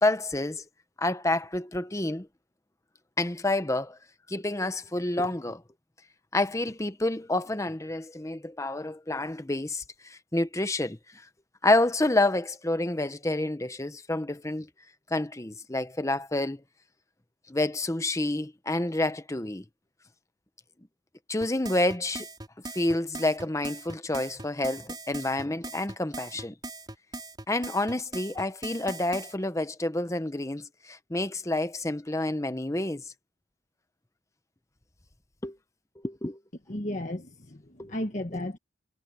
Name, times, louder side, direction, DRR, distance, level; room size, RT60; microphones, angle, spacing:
voice 1, 0.0-0.6 1.0-2.3 3.2-4.0 4.3-5.6 6.3-11.2 11.6-14.7 15.1-16.6 17.5-19.6 21.3-22.3 22.7-26.5 27.5-33.1 35.4-35.6 36.0-36.4 37.8-38.0, left 2 dB, 15° left, 0.9 m, -28 dB
sound 1, 21.4-29.3, right 2 dB, 20° right, 4.8 m, -40 dB
voice 2, 36.7-38.6, left 1 dB, 40° left, 1.5 m, -34 dB
head